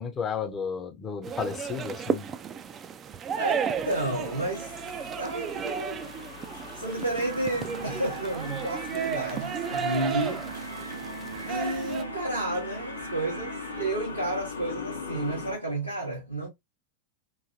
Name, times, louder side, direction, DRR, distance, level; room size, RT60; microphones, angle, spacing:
voice 1, 0.0-2.3, left 6 dB, 25° left, 0.6 m, -33 dB
sound 1, 1.2-12.0, right 7 dB, 25° right, 0.3 m, -34 dB
voice 2, 3.4-4.7 5.2-6.3 6.7-10.4 11.3-16.5, right 2 dB, 85° right, 1.2 m, -31 dB
sound 2, 3.7-15.6, left 5 dB, 75° left, 0.7 m, -41 dB
sound 3, 7.2-13.8, right 4 dB, 70° right, 0.6 m, -40 dB
3.1 x 2.6 x 2.5 m
figure-of-eight pair, 90°, 0 cm